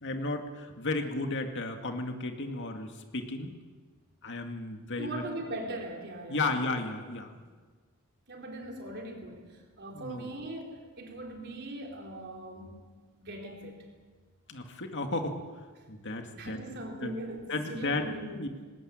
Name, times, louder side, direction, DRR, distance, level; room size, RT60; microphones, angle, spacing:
voice 1, 0.0-3.5 4.2-5.2 6.3-7.3 9.9-10.3 14.5-15.4 15.9-16.6 17.0-17.1 17.5-18.5, left 2 dB, 55° left, 5 dB, 2.3 m, -34 dB
voice 2, 4.9-6.6 8.3-12.8 13.1-13.9 16.3-18.3, right 1 dB, 55° right, 2 dB, 4.0 m, -40 dB
20.0 x 19.0 x 8.9 m, 1.4 s
head